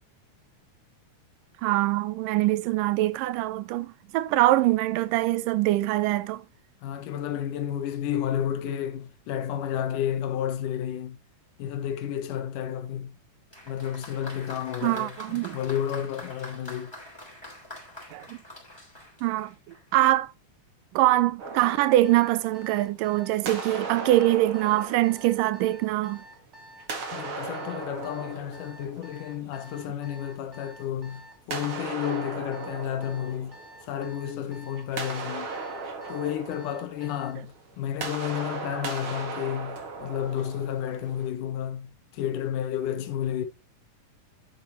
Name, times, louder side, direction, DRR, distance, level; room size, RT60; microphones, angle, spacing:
voice 1, 1.6-6.4 14.8-15.6 18.1-18.4 19.2-19.5 19.9-20.3 20.9-26.2, right 16 dB, 85° right, 2.3 m, -23 dB
voice 2, 6.8-11.2 11.6-13.2 13.7-16.9 27.1-33.6 33.9-35.5 36.1-43.5, left 10 dB, 75° left, 2.6 m, -31 dB
Applause, 13.5-20.0, left 1 dB, 5° left, 3.5 m, -45 dB
sound 1, 21.4-23.0 23.4-26.2 26.8-29.7 31.5-34.3 34.6-41.3, right 4 dB, 45° right, 2.3 m, -38 dB
Alarm, 21.6-37.4, equal, 25° right, 2.3 m, -49 dB
9.3 x 7.7 x 3.0 m
omnidirectional pair, 3.8 m